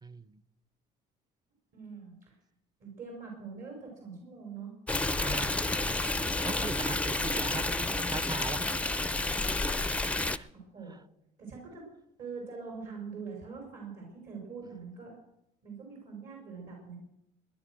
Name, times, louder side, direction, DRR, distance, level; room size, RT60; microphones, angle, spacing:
voice 1, 0.0-0.4 5.2-5.7 6.4-8.6 10.2-10.5, right 3 dB, 25° right, 15 dB, 0.8 m, -40 dB
voice 2, 1.7-2.3 2.8-4.7 10.5-11.0 11.4-11.9 12.2-15.2 15.6-17.0, right 5 dB, 55° right, 0 dB, 5.4 m, -43 dB
Stream, 4.9-10.4, left 2 dB, 5° left, 0.5 m, -30 dB
19.0 x 10.5 x 6.3 m, 0.81 s
cardioid pair, 110°, 17 cm